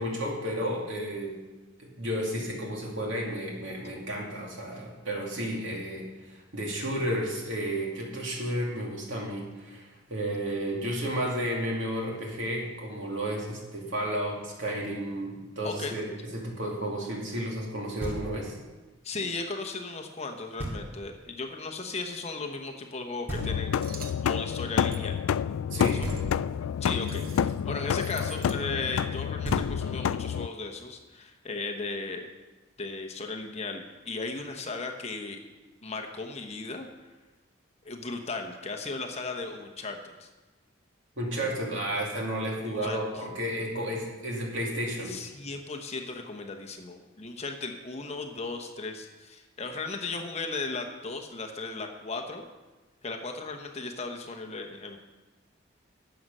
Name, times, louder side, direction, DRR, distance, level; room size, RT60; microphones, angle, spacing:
voice 1, 0.0-1.3 1.8-18.5 25.7-26.0 41.2-45.2, equal, 65° right, -1 dB, 2.5 m, -32 dB
voice 2, 15.6-16.0 19.0-23.7 24.2-25.2 25.7-26.1 26.8-32.3 32.8-35.4 35.8-36.9 37.8-40.3 42.6-43.0 45.0-52.4 53.0-55.0, left 3 dB, 30° left, 3 dB, 1.0 m, -36 dB
Knock, 18.0-18.7 20.6-21.2 23.3-24.1 26.0-26.8 29.1-29.2 29.4-30.2, right 1 dB, 10° right, 2.0 m, -37 dB
sound 1, 23.4-30.5, left 8 dB, 85° left, 0.3 m, -29 dB
sound 2, 23.8-24.2 24.9-25.1 25.8-26.3 27.0-27.6 27.9-28.6, right 7 dB, 45° right, 0.8 m, -47 dB
12.5 x 7.7 x 5.5 m, 1.2 s
head